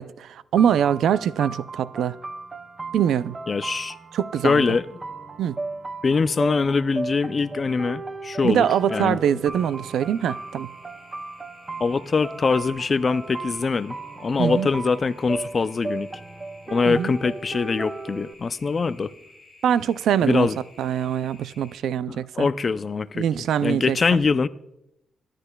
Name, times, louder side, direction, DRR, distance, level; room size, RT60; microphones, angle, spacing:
voice 1, 0.0-2.2 2.9-3.4 4.1-4.6 5.4-5.6 8.4-10.7 14.4-14.7 16.9-17.1 19.6-20.5 20.8-22.5 23.2-24.2, right 9 dB, 75° right, 0.4 m, -23 dB
sound 1, 0.6-18.3, right 3 dB, 20° right, 0.5 m, -36 dB
voice 2, 3.5-4.0 4.4-4.8 6.0-9.2 11.8-16.1 16.7-19.1 20.2-20.6 22.1-23.2 23.6-24.5, left 4 dB, 30° left, 0.4 m, -23 dB
sound 2, 9.5-21.7, left 2 dB, 15° left, 5.9 m, -52 dB
24.0 x 11.5 x 2.2 m
cardioid pair, 155°, 0 cm